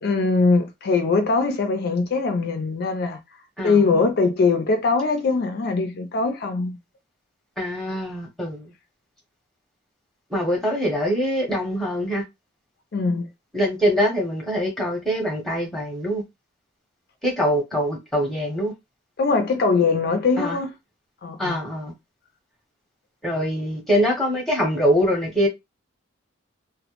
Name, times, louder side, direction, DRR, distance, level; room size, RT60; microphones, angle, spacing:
voice 1, 0.0-3.2 3.6-6.8 12.9-13.3 19.2-20.8 21.2-21.6, left 4 dB, 50° left, 0.4 m, -21 dB
voice 2, 7.6-8.7 10.3-12.2 13.5-16.2 17.2-18.7 20.4-20.6 21.4-21.9 23.2-25.5, equal, ahead, 0.7 m, -23 dB
2.1 x 2.0 x 2.9 m
head